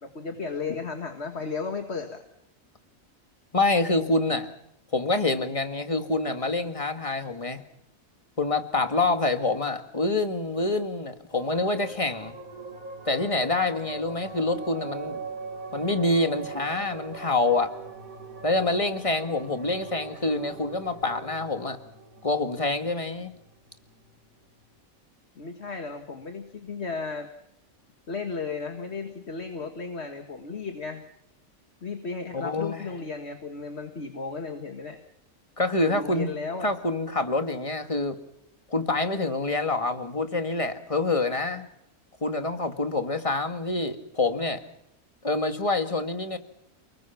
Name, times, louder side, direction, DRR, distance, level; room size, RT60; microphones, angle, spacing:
voice 1, 0.0-2.2 25.4-27.3 28.1-31.0 31.8-35.0 35.8-36.7, left 4 dB, 50° left, 1.9 m, -34 dB
voice 2, 3.5-4.5 4.9-7.6 8.4-12.4 13.1-15.2 15.7-17.7 18.4-21.8 22.2-23.4 32.3-32.9 35.6-36.3 36.6-38.2 38.7-41.7 42.2-44.6 45.2-46.4, left 2 dB, 25° left, 2.0 m, -26 dB
sound 1, 11.3-24.2, right 4 dB, 80° right, 2.3 m, -41 dB
29.5 x 20.5 x 6.0 m
omnidirectional pair, 1.4 m